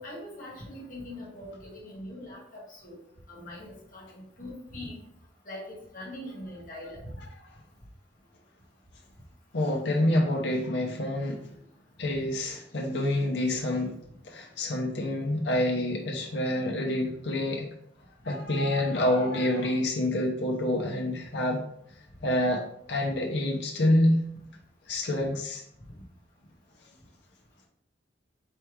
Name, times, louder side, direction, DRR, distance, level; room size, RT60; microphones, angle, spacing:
voice 1, 0.0-3.0 3.3-4.1 4.4-4.9 5.4-5.7 5.9-7.1 25.2-25.3, left 1 dB, 45° left, -4 dB, 1.6 m, -42 dB
voice 2, 9.5-11.4 12.0-13.9 14.3-17.7 18.2-21.6 22.2-22.6 22.9-24.2 24.9-25.6, left 1 dB, 65° left, 0 dB, 0.7 m, -27 dB
4.2 x 3.5 x 3.1 m, 0.69 s
head